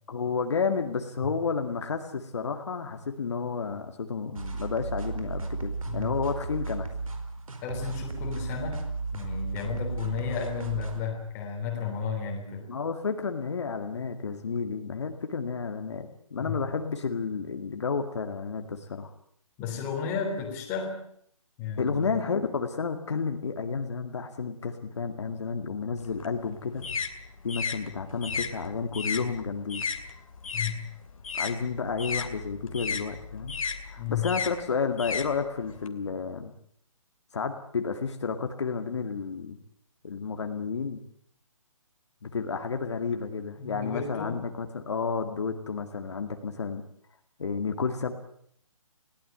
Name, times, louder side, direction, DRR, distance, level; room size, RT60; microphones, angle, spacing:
voice 1, 0.1-6.9 12.7-19.1 21.8-26.8 27.4-29.8 31.3-33.6 33.8-36.5 37.3-39.6 40.0-41.0 42.2-46.8 47.4-48.1, left 5 dB, 55° left, 5 dB, 2.1 m, -31 dB
sound 1, 4.4-11.0, right 3 dB, 80° right, 4.9 m, -34 dB
voice 2, 7.6-8.8 9.1-12.7 16.4-16.6 19.6-21.0 21.6-22.1 30.5-30.8 34.0-34.3 43.6-44.4, left 6 dB, 10° left, 1 dB, 3.4 m, -33 dB
sound 2, 26.0-30.8 31.1-35.9, left 5 dB, 75° left, 2.6 m, -34 dB
21.5 x 17.0 x 8.9 m, 0.67 s
hypercardioid pair, 175°, 18 cm